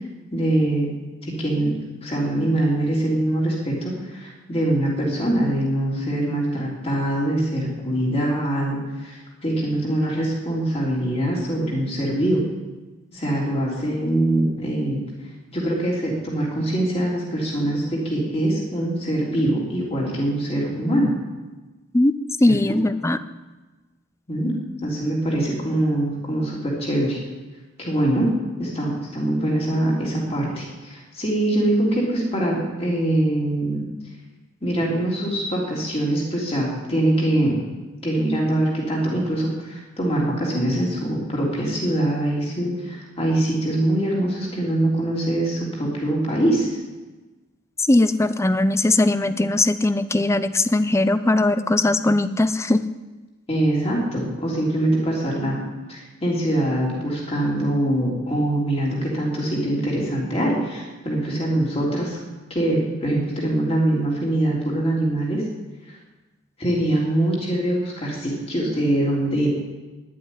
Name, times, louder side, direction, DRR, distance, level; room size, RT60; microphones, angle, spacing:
voice 1, 0.3-0.9 1.2-1.7 2.0-12.4 13.1-15.0 15.5-21.1 22.5-22.6 24.3-24.5 24.8-27.2 27.8-28.3 28.6-33.9 34.6-37.6 38.0-46.8 53.5-55.6 55.9-62.2 62.5-65.4 65.9-66.0 66.6-69.5, right 1 dB, 30° left, -3 dB, 3.3 m, -23 dB
voice 2, 22.4-23.2 47.8-52.8, left 2 dB, 15° left, 13 dB, 0.5 m, -19 dB
10.0 x 8.6 x 9.9 m, 1.2 s
head